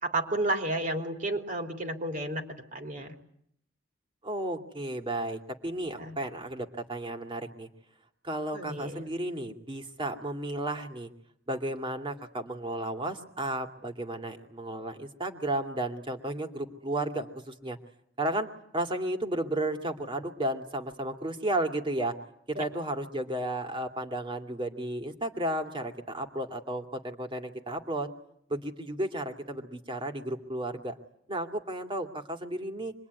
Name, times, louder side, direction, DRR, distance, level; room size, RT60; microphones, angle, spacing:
voice 1, 0.0-3.2 6.0-6.2 8.5-9.1 22.5-22.6, right 2 dB, 45° right, 4 dB, 3.4 m, -32 dB
voice 2, 4.2-7.7 8.2-11.1 11.5-17.8 18.2-22.2 22.5-28.1 28.5-31.0 31.3-32.9, right 1 dB, 25° right, 5 dB, 2.6 m, -33 dB
26.0 x 22.5 x 9.6 m, 0.70 s
head